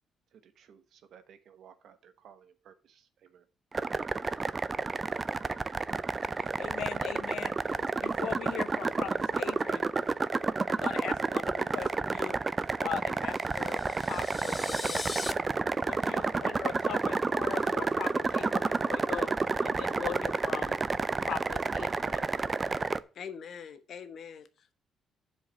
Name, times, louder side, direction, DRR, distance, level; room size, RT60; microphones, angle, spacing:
voice 1, 0.3-3.5, right 8 dB, 70° right, 1.2 m, -57 dB
sound 1, 3.7-23.0, right 4 dB, 30° right, 0.5 m, -30 dB
voice 2, 6.4-7.6 8.0-9.8 10.7-12.4 12.8-15.1 15.8-19.3 19.6-20.8 21.2-22.2, left 11 dB, 75° left, 0.5 m, -40 dB
sound 2, 13.4-15.3, left 3 dB, 25° left, 0.6 m, -39 dB
voice 3, 23.1-24.7, left 7 dB, 60° left, 1.1 m, -44 dB
7.3 x 4.9 x 7.1 m
cardioid pair, 90°, 0 cm